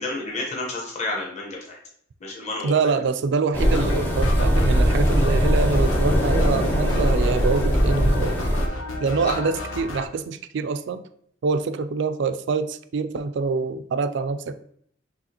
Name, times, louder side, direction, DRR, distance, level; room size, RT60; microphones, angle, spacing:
voice 1, 0.0-1.8 2.2-2.9 9.2-9.4, left 2 dB, 35° left, -2 dB, 0.9 m, -30 dB
voice 2, 2.6-8.3 9.0-11.0 11.4-14.5, right 4 dB, 60° right, 11 dB, 0.3 m, -25 dB
sound 1, 3.5-8.7, equal, 10° left, 0.5 m, -20 dB
sound 2, 3.6-10.1, left 1 dB, 80° left, 0.7 m, -32 dB
4.8 x 3.2 x 2.8 m, 0.66 s
head